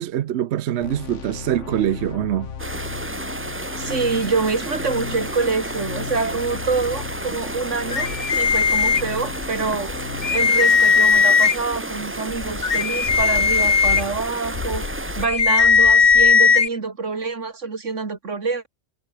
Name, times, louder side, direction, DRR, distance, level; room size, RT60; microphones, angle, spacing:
voice 1, 0.0-2.5, right 11 dB, 70° right, 0.9 m, -24 dB
sound 1, 0.8-10.5, left 7 dB, 80° left, 1.6 m, -35 dB
sound 2, 2.6-15.3, right 2 dB, 15° right, 0.7 m, -32 dB
voice 2, 3.8-9.9 10.3-18.7, right 4 dB, 85° right, 2.7 m, -26 dB
sound 3, 7.9-9.5 9.9-10.0 10.2-11.8 12.3-16.7, left 6 dB, 40° left, 1.1 m, -17 dB
omnidirectional pair, 1.2 m